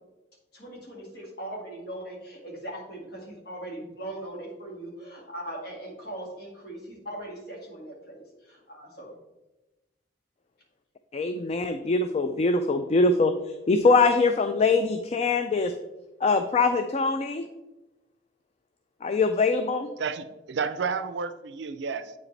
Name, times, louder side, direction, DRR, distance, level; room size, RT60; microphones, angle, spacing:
voice 1, 0.5-9.1, right 1 dB, 60° left, -2 dB, 2.0 m, -40 dB
voice 2, 11.1-13.3 13.7-15.7 16.2-17.5 19.0-19.9, left 3 dB, 35° left, 8 dB, 0.3 m, -23 dB
voice 3, 20.0-22.1, right 5 dB, 70° right, 12 dB, 0.4 m, -31 dB
8.2 x 4.9 x 3.2 m, 1.0 s
head